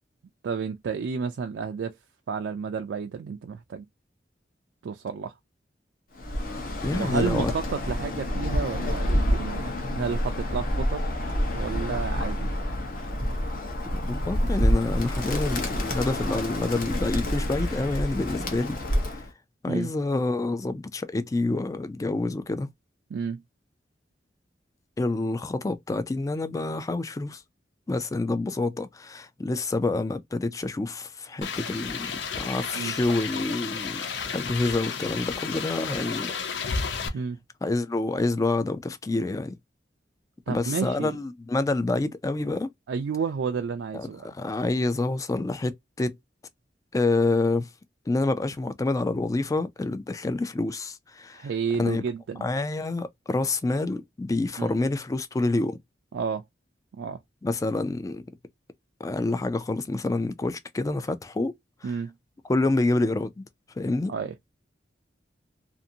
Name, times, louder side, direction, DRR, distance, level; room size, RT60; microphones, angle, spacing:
voice 1, 0.4-1.9 2.3-3.9 4.8-5.3 6.9-11.0 11.5-12.5 19.7-19.9 23.1-23.4 32.7-32.9 37.1-37.4 40.5-41.2 42.9-44.3 51.3-52.4 54.6-54.7 56.1-56.4 57.0-57.2 61.8-62.1 64.1-64.3, right 5 dB, 85° right, 0.3 m, -31 dB
Bird, 6.2-19.3, equal, 50° left, 0.8 m, -28 dB
voice 2, 6.8-7.5 14.0-18.8 19.6-22.7 25.0-27.4 27.9-34.0 34.3-36.3 37.6-39.5 40.5-42.7 43.9-46.2 46.9-47.7 48.1-51.5 51.8-52.0 52.4-55.8 57.4-58.2 59.0-61.5 62.5-63.4 63.8-64.1, left 2 dB, 20° left, 0.3 m, -27 dB
sound 1, 31.4-37.1, left 5 dB, 80° left, 0.5 m, -32 dB
2.6 x 2.5 x 2.7 m
head